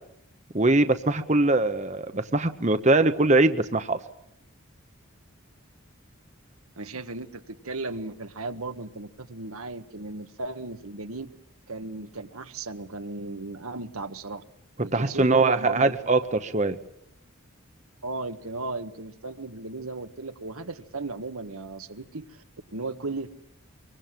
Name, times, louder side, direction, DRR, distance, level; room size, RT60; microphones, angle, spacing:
voice 1, 0.5-4.0 14.9-16.8, right 2 dB, 30° right, 9 dB, 1.0 m, -22 dB
voice 2, 6.8-11.3 11.7-14.4 14.8-15.9 18.0-22.4 22.7-23.3, right 3 dB, 85° right, 8 dB, 1.6 m, -36 dB
24.5 x 24.0 x 7.6 m, 0.77 s
head